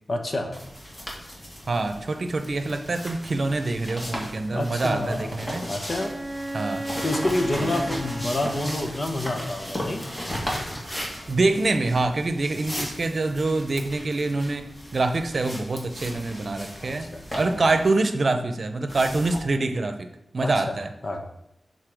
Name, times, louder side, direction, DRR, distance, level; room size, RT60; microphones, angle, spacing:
voice 1, 0.1-0.6 4.5-5.4 5.7-6.1 7.0-10.0 16.8-17.6 20.4-20.8 21.0-21.2, left 1 dB, 50° left, 4 dB, 1.1 m, -28 dB
sound 1, 0.5-17.9 18.9-19.4, equal, 25° left, 2.1 m, -36 dB
voice 2, 1.7-5.6 6.5-6.8 7.5-7.8 11.3-17.1 17.3-20.1 20.3-20.9, right 2 dB, 55° right, 7 dB, 0.8 m, -25 dB
Bowed string instrument, 6.0-9.5, right 1 dB, 15° right, 0.4 m, -35 dB
6.7 x 4.1 x 6.1 m, 0.82 s
wide cardioid pair, 70°, 0 cm